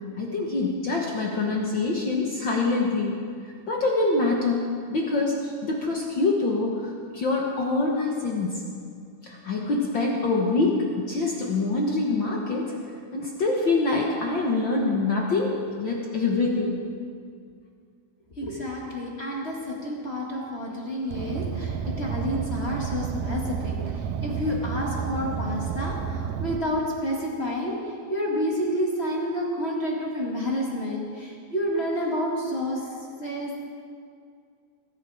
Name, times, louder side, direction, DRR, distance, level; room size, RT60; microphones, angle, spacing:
voice 1, 0.1-3.1 3.7-4.6 4.9-8.6 9.2-12.8 13.1-16.7, left 3 dB, 70° left, -1 dB, 1.1 m, -25 dB
voice 2, 18.4-32.9 33.2-33.6, equal, 30° left, -2 dB, 1.3 m, -29 dB
Car, 21.1-26.6, right 7 dB, 75° right, 2.1 m, -31 dB
22.5 x 10.5 x 4.9 m, 2.2 s
omnidirectional pair, 4.1 m